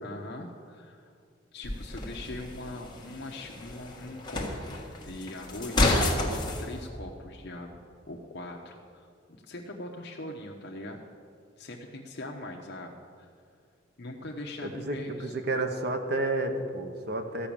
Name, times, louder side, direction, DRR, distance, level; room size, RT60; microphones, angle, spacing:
voice 1, 0.0-1.1 1.5-4.7 5.0-7.8 8.1-9.1 9.4-11.0 11.6-13.3 14.0-15.3, left 1 dB, 60° left, 0 dB, 0.9 m, -41 dB
sound 1, 1.6-6.6, left 2 dB, 25° left, 1.6 m, -30 dB
voice 2, 14.6-17.5, right 2 dB, 55° right, 6 dB, 1.0 m, -31 dB
14.0 x 6.1 x 8.7 m, 2.3 s
head